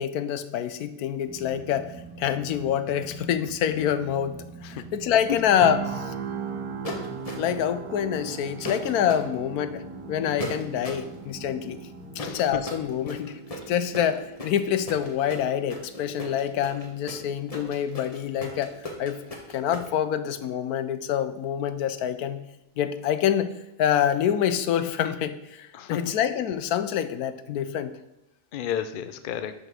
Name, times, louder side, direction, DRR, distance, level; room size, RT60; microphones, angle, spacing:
voice 1, 0.0-1.9 2.2-4.4 4.6-6.1 7.4-9.8 10.1-11.8 12.3-13.4 13.7-18.7 19.0-19.2 19.5-22.4 22.8-27.9, left 9 dB, 85° left, 12 dB, 1.1 m, -26 dB
sound 1, 1.3-12.3, right 2 dB, 5° right, 0.7 m, -45 dB
sound 2, 5.6-19.6 20.0-20.2, right 6 dB, 85° right, 1.2 m, -40 dB
sound 3, 6.8-7.7 8.6-9.2 10.4-11.1 12.2-19.9, left 1 dB, 25° left, 1.2 m, -37 dB
voice 2, 12.2-12.6 25.7-26.0 28.5-29.5, left 10 dB, 60° left, 10 dB, 0.5 m, -31 dB
5.9 x 5.3 x 6.2 m, 0.96 s
omnidirectional pair, 1.6 m